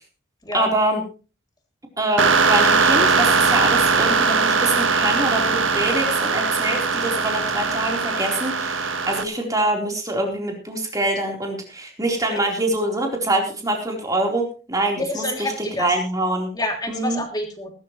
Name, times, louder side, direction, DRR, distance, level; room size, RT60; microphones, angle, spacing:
voice 1, 0.5-1.0 2.0-15.5 15.8-16.5 16.9-17.2, right 1 dB, 20° right, 0 dB, 4.1 m, -24 dB
sound 1, 2.2-9.2, right 4 dB, 80° right, 1.5 m, -20 dB
voice 2, 15.0-15.9 16.5-17.7, left 2 dB, 20° left, 2 dB, 3.1 m, -28 dB
20.0 x 12.5 x 3.2 m, 0.35 s
head